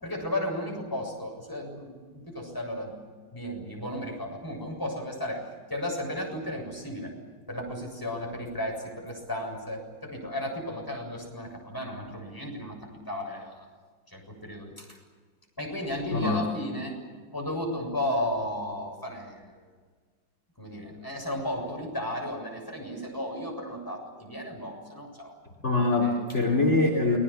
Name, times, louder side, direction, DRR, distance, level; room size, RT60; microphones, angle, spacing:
voice 1, 0.0-3.0 3.3-7.1 7.5-12.8 13.1-13.7 14.1-15.0 15.6-17.0 17.3-19.6 20.6-25.3 26.0-26.2, left 1 dB, 10° left, 0 dB, 7.4 m, -34 dB
voice 2, 16.1-16.4 25.6-27.2, left 2 dB, 35° left, 1 dB, 3.5 m, -23 dB
29.0 x 22.0 x 7.3 m, 1.5 s
omnidirectional pair, 2.0 m